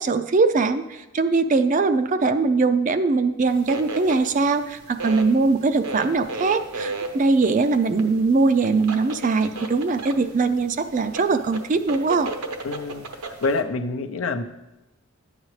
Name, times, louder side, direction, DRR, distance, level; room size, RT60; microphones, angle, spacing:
voice 1, 0.0-12.3, right 3 dB, 35° right, 10 dB, 0.4 m, -21 dB
sound 1, 3.5-13.6, right 3 dB, 85° right, 1.0 m, -35 dB
voice 2, 12.6-14.4, left 3 dB, 65° left, 7 dB, 0.6 m, -27 dB
11.5 x 8.9 x 3.2 m, 1.0 s
head